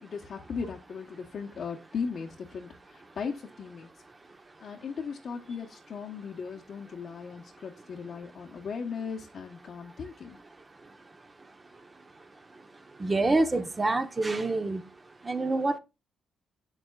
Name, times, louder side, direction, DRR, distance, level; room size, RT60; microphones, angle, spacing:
voice 1, 0.0-4.0 4.6-10.4, left 5 dB, 55° left, 1.1 m, -37 dB
voice 2, 13.0-14.8 15.2-15.8, right 2 dB, 25° right, 1.1 m, -26 dB
8.0 x 7.3 x 2.4 m
cardioid pair, 90°, 0 cm